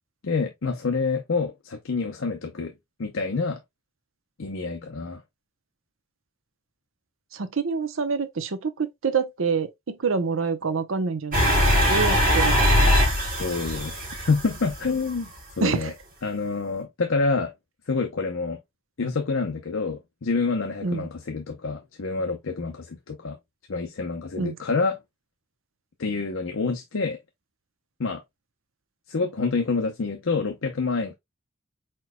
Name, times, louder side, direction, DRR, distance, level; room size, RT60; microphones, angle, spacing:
voice 1, 0.2-2.7 3.0-3.6 4.4-5.2 13.4-13.9 14.3-15.3 15.6-15.9 16.2-17.5 17.9-18.6 19.0-23.4 23.7-25.0 26.0-27.2 28.0-28.2 29.1-31.1, left 4 dB, 70° left, 0.7 m, -27 dB
voice 2, 7.3-12.9 15.6-15.9 20.8-21.1 24.4-24.6, right 5 dB, 70° right, 0.7 m, -27 dB
sound 1, 11.3-15.2, equal, 40° right, 3.1 m, -21 dB
4.5 x 4.4 x 2.2 m
head